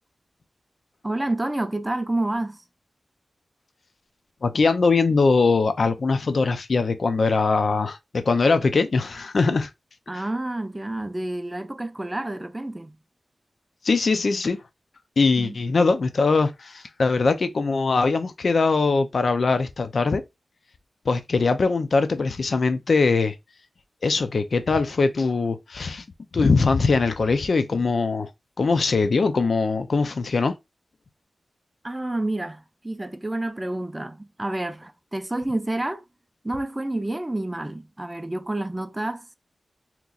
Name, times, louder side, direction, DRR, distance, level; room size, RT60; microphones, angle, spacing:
voice 1, 1.0-2.6 10.1-13.0 15.4-15.6 31.8-36.0 36.4-39.4, right 1 dB, 20° right, 0.4 m, -29 dB
voice 2, 4.4-9.7 10.1-10.2 13.8-14.6 15.2-20.2 21.1-23.3 24.0-26.0 26.3-28.3 28.6-30.5, left 4 dB, 65° left, 0.4 m, -21 dB
2.9 x 2.4 x 3.8 m
wide cardioid pair, 75°, 0 cm